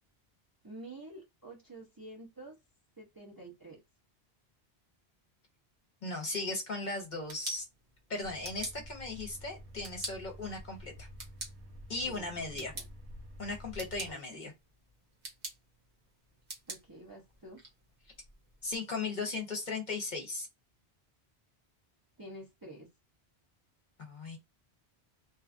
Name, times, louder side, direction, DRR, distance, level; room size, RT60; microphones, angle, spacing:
voice 1, 0.6-2.6 3.0-3.8 12.0-12.8 14.1-14.5 16.7-17.6 22.2-22.9, right 1 dB, 25° right, 0.5 m, -49 dB
voice 2, 6.0-7.6 8.1-11.1 11.9-12.7 13.4-14.5 18.6-20.5 24.0-24.4, left 3 dB, 50° left, 0.8 m, -37 dB
sound 1, 7.0-18.8, right 2 dB, 55° right, 1.1 m, -48 dB
sound 2, 8.2-14.1, equal, 80° right, 1.0 m, -50 dB
2.8 x 2.3 x 2.4 m
omnidirectional pair, 1.1 m